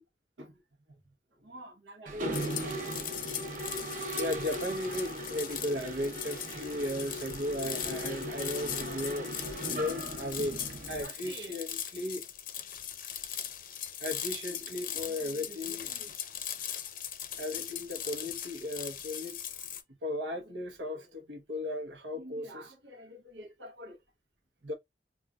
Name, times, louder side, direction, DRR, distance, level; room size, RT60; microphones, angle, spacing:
voice 1, 1.4-2.8 3.4-12.2 14.0-16.3 17.4-19.4 20.0-24.0 24.6-24.7, left 1 dB, 85° right, 0.9 m, -37 dB
Mechanisms, 2.1-11.0, right 1 dB, 50° right, 0.8 m, -38 dB
sound 1, 2.3-19.8, left 10 dB, 50° left, 0.5 m, -40 dB
5.1 x 2.4 x 2.3 m
head